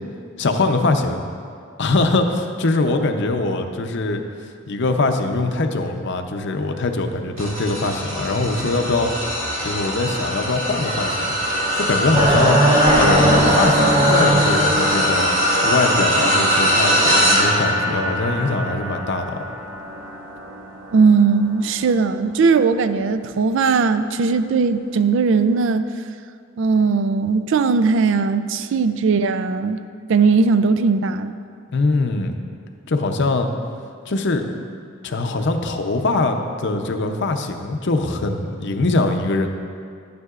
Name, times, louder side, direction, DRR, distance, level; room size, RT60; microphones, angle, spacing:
voice 1, 0.4-1.2 1.8-4.2 4.7-9.1 9.6-11.2 11.7-12.6 12.9-15.3 15.6-19.5 31.7-32.4 32.9-33.5 34.1-34.4 35.0-39.5, left 2 dB, 60° left, 5 dB, 0.6 m, -22 dB
sound 1, 7.4-22.9 23.4-23.7 24.9-25.0, equal, 85° right, 1.6 m, -22 dB
sound 2, 12.1-15.0, right 1 dB, 25° right, 1.2 m, -17 dB
voice 2, 20.9-25.9 26.6-29.8 30.1-31.3, right 4 dB, 65° right, 11 dB, 0.4 m, -18 dB
11.5 x 9.4 x 2.4 m, 2.3 s
head